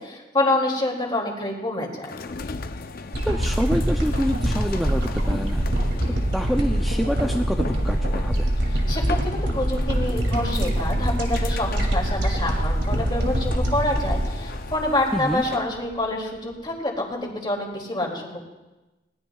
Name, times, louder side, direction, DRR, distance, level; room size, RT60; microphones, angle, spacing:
voice 1, 0.0-2.2 8.7-18.4, left 1 dB, 25° left, 0 dB, 2.6 m, -27 dB
sound 1, 2.0-15.8, left 4 dB, 50° left, 0.6 m, -38 dB
sound 2, 3.1-15.5 15.9-16.0, right 1 dB, 65° right, 2.5 m, -24 dB
voice 2, 3.2-5.9 6.3-8.5 15.1-15.4, equal, ahead, 2 dB, 0.5 m, -27 dB
21.0 x 18.5 x 2.3 m, 1.1 s
head